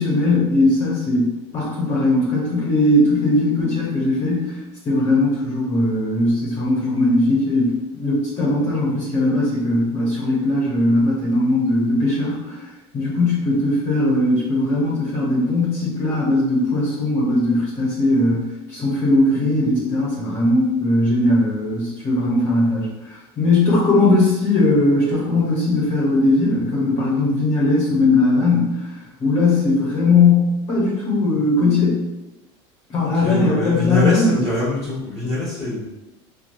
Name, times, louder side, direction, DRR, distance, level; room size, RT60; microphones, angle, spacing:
voice 1, 0.0-4.6 4.8-12.7 12.9-28.9 29.2-32.0 32.9-34.3, left 2 dB, 40° left, -6 dB, 1.2 m, -19 dB
voice 2, 33.0-35.9, left 2 dB, 20° left, -11 dB, 1.3 m, -23 dB
3.0 x 2.3 x 2.7 m, 0.97 s
hypercardioid pair, 85°, 15 cm